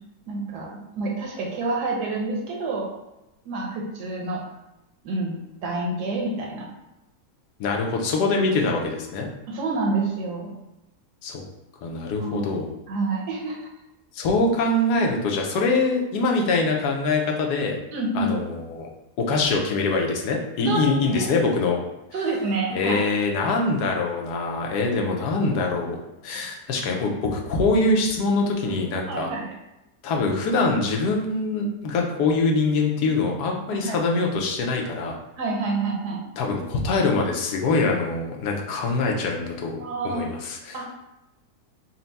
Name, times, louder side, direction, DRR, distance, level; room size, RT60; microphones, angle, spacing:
voice 1, 0.3-2.9 3.5-4.4 5.0-6.7 9.5-10.5 12.2-12.5 12.9-13.6 17.9-18.3 20.7-21.3 22.1-23.0 29.1-29.5 33.7-34.0 35.4-36.2 39.8-40.3 40.7-40.9, right 3 dB, 80° right, 0 dB, 1.4 m, -28 dB
voice 2, 7.6-9.3 11.2-11.4 11.8-12.7 14.1-17.8 18.1-18.9 19.2-21.8 22.7-29.3 30.0-35.2 36.4-40.8, left 3 dB, 85° left, 1 dB, 1.2 m, -24 dB
4.4 x 2.1 x 4.0 m, 0.94 s
omnidirectional pair, 1.7 m